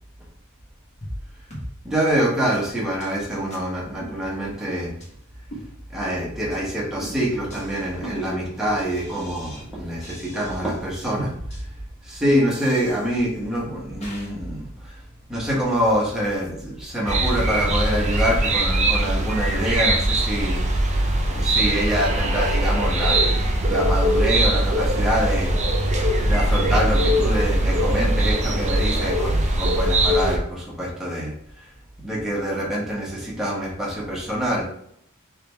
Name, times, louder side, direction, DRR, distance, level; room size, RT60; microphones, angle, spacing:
sound 1, 1.0-1.2 1.5-1.7 2.0-2.1 2.5-2.6 3.0-3.2 3.5-3.6 4.0-4.6 5.0-5.1 5.5-6.1 6.5-6.7 7.0-9.6 10.0-10.9 11.5-11.6 12.5-13.5 14.0-14.3, equal, 30° left, 1.3 m, -40 dB
voice 1, 1.8-5.0 5.9-11.7 12.0-15.0 15.3-21.0 21.2-23.3 23.6-25.6 26.2-31.7 32.0-34.6, equal, ahead, -6 dB, 1.3 m, -25 dB
sound 2, 17.1-30.4, right 1 dB, 30° right, 0.6 m, -21 dB
3.8 x 3.4 x 3.4 m, 0.69 s
head